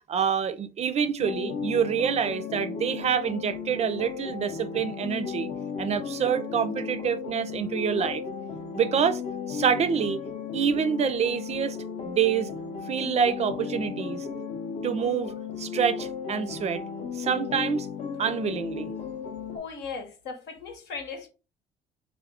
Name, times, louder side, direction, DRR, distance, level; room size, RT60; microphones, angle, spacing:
voice 1, 0.1-5.5 5.8-8.2 8.7-9.2 9.5-10.2 10.5-11.8 12.0-12.5 12.9-14.3 14.8-15.3 15.6-16.8 17.1-17.9 18.2-18.9, right 7 dB, 40° right, 0.4 m, -26 dB
sound 1, 1.2-19.6, left 6 dB, 45° left, 0.6 m, -35 dB
voice 2, 19.5-21.3, left 5 dB, 80° left, 1.1 m, -37 dB
3.6 x 2.4 x 3.5 m
cardioid pair, 110°, 17 cm